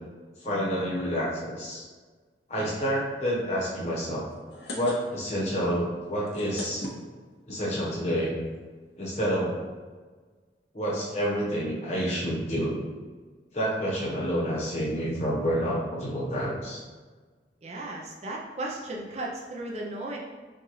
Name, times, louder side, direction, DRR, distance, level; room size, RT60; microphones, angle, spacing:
voice 1, 0.4-1.8 2.5-4.3 4.7-6.9 7.5-8.3 9.0-9.6 10.7-12.8 13.5-16.8, equal, 40° left, -5 dB, 1.0 m, -28 dB
sound 1, 4.3-5.4 5.7-5.8 6.1-7.6 8.3-8.4 8.6-8.7 8.9-9.2, left 1 dB, 75° left, 0.7 m, -39 dB
voice 2, 17.6-20.2, right 1 dB, 35° right, -2 dB, 0.5 m, -35 dB
5.9 x 2.4 x 3.1 m, 1.4 s
head